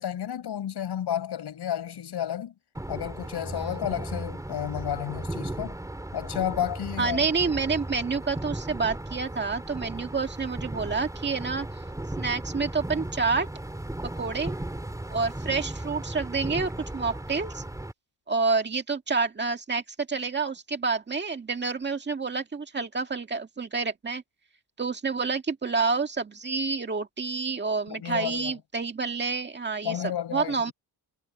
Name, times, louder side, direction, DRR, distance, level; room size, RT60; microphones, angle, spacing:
voice 1, 0.0-2.5 2.9-5.8 6.1-7.3 27.9-28.6 29.8-30.7, left 10 dB, 80° left, 6.0 m, -31 dB
sound 1, 2.7-17.9, right 1 dB, 10° right, 3.2 m, -36 dB
voice 2, 7.0-11.7 12.2-13.5 14.2-14.5 15.1-17.6 18.3-19.8 20.1-24.2 24.8-30.0 30.3-30.7, right 4 dB, 25° right, 2.0 m, -28 dB
wide cardioid pair, 170°, 39 cm